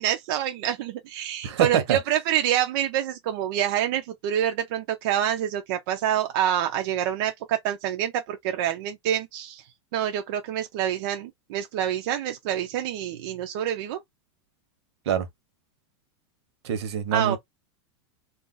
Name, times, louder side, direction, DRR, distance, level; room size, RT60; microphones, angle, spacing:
voice 1, 0.0-9.6 9.9-14.0 17.1-17.4, right 11 dB, 50° right, 0.4 m, -27 dB
voice 2, 1.4-2.0 15.1-15.3 16.6-17.4, right 8 dB, 70° right, 0.9 m, -25 dB
2.4 x 2.2 x 3.8 m
supercardioid pair, 170°, 14 cm